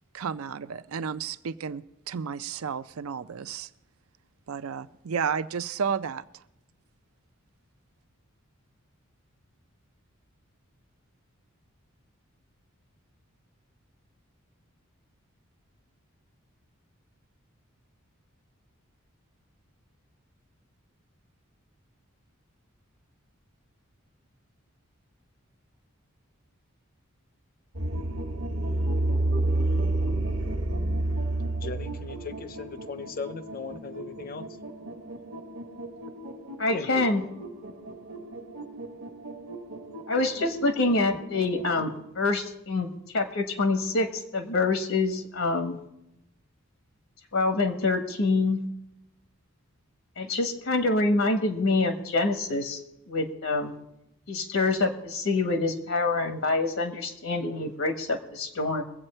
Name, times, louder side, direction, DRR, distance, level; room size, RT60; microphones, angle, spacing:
voice 1, 0.1-3.7 4.5-6.4, right 6 dB, 80° right, 14 dB, 0.5 m, -32 dB
sound 1, 27.7-42.0, right 2 dB, 65° right, 1.1 m, -31 dB
voice 2, 31.6-34.4 36.7-37.0, left 4 dB, 40° left, 12 dB, 0.6 m, -38 dB
voice 3, 36.6-37.2 40.1-45.8 47.3-48.6 50.2-52.8 53.1-53.7 54.3-58.8, left 3 dB, 80° left, 7 dB, 1.3 m, -26 dB
22.0 x 8.0 x 4.4 m, 0.83 s
head